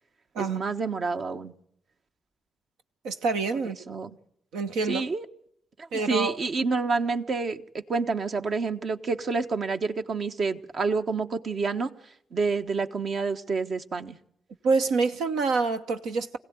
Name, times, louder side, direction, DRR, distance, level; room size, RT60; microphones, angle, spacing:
voice 1, 0.4-1.5 3.9-4.1 4.9-5.3 5.8-11.9 12.3-14.2, right 4 dB, 60° right, 1.3 m, -28 dB
voice 2, 3.0-3.8 4.5-5.0 5.9-6.4 14.6-16.4, right 4 dB, 80° right, 1.0 m, -26 dB
25.0 x 16.5 x 9.4 m
hypercardioid pair, 40°, 0 cm